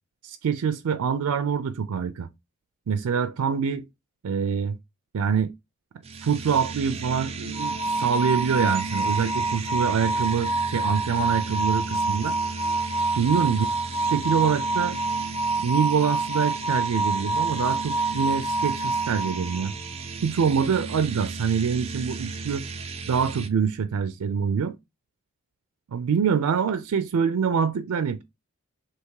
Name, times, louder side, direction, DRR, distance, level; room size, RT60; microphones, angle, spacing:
voice 1, 0.2-2.3 2.9-3.8 4.2-4.8 5.1-5.5 6.2-12.4 13.2-13.7 14.0-15.0 15.6-19.7 20.2-22.6 23.1-24.7 25.9-28.2, right 6 dB, 85° right, 0.4 m, -25 dB
sound 1, 6.0-23.5, right 4 dB, 25° right, 0.4 m, -35 dB
sound 2, 7.5-19.8, right 2 dB, 55° left, 1.6 m, -27 dB
3.5 x 2.8 x 4.6 m
head